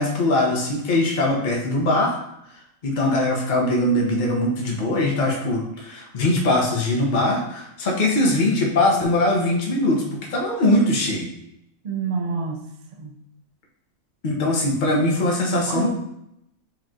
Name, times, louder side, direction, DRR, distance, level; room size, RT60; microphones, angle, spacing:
voice 1, 0.0-2.2 2.8-11.3 14.2-15.9, left 1 dB, 40° left, -1 dB, 0.9 m, -21 dB
voice 2, 11.8-12.6 13.0-13.1 15.7-15.9, right 4 dB, 90° right, 3 dB, 0.3 m, -27 dB
4.8 x 3.1 x 3.7 m, 0.79 s
omnidirectional pair, 1.5 m